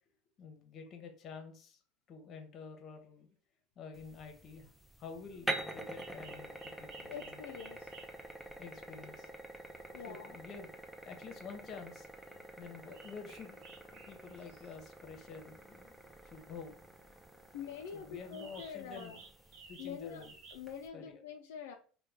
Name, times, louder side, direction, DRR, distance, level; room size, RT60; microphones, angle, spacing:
voice 1, 0.4-1.8 2.1-3.3 3.8-4.7 5.0-7.4 8.6-9.3 10.0-10.7 11.0-12.1 12.6-15.9 16.2-16.8 17.9-19.2 19.7-20.3 20.9-21.2, left 5 dB, 45° left, 5 dB, 0.9 m, -49 dB
sound 1, 3.9-20.9, right 1 dB, 5° right, 0.5 m, -47 dB
sound 2, 6.0-8.3 11.5-11.6 12.2-12.4 12.7-14.7 18.3-20.6, right 5 dB, 60° right, 0.7 m, -56 dB
voice 2, 7.1-7.9 9.9-10.4 17.5-19.2 19.8-20.2 20.5-21.7, left 7 dB, 80° left, 3 dB, 0.4 m, -45 dB
3.0 x 2.2 x 3.5 m, 0.41 s
supercardioid pair, 100°, 0 cm